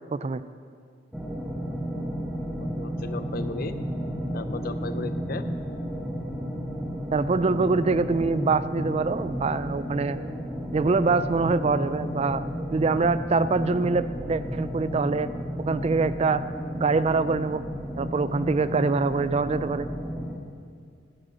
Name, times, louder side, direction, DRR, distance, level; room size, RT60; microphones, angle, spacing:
sound 1, 1.1-20.4, equal, 5° right, 1.3 m, -32 dB
voice 1, 2.6-3.7 4.3-5.4, left 3 dB, 50° left, 11 dB, 0.6 m, -35 dB
voice 2, 7.1-10.2 10.7-12.4 12.7-15.3 15.6-16.4 16.7-17.6 18.0-19.9, right 4 dB, 30° right, 14 dB, 0.3 m, -24 dB
13.5 x 9.1 x 7.8 m, 2.2 s
head